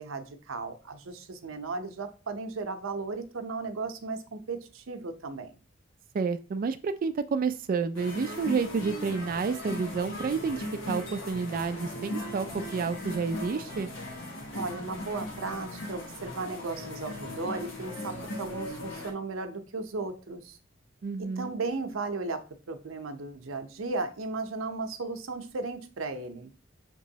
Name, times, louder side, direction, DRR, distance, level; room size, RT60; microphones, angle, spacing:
voice 1, 0.0-5.6 14.5-20.6 21.4-22.4 22.7-26.5, right 3 dB, 80° right, 8 dB, 0.6 m, -35 dB
voice 2, 6.1-12.5 12.7-13.9 21.0-21.5, right 5 dB, 45° right, 11 dB, 0.3 m, -30 dB
sound 1, 7.9-19.1, left 1 dB, 65° left, 1.0 m, -38 dB
6.0 x 3.0 x 2.7 m, 0.35 s
head